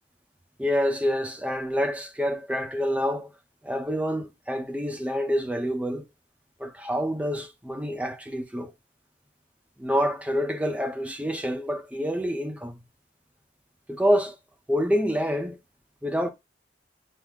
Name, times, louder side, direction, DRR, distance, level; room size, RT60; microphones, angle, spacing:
voice 1, 0.6-3.3 3.6-6.1 6.6-8.7 9.8-12.8 13.9-14.4 14.7-15.6 16.0-16.3, equal, 5° right, 0.6 m, -27 dB
6.2 x 2.1 x 3.6 m
head